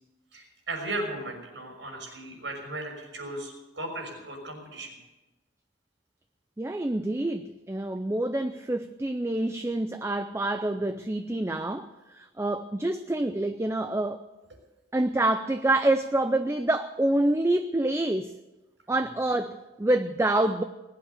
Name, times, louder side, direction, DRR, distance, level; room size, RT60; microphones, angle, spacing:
voice 1, 0.3-4.9, right 2 dB, 70° right, 5.9 m, -36 dB
voice 2, 6.6-14.2 14.9-18.4 18.9-20.6, right 1 dB, 15° right, 0.4 m, -27 dB
20.5 x 8.8 x 8.1 m
head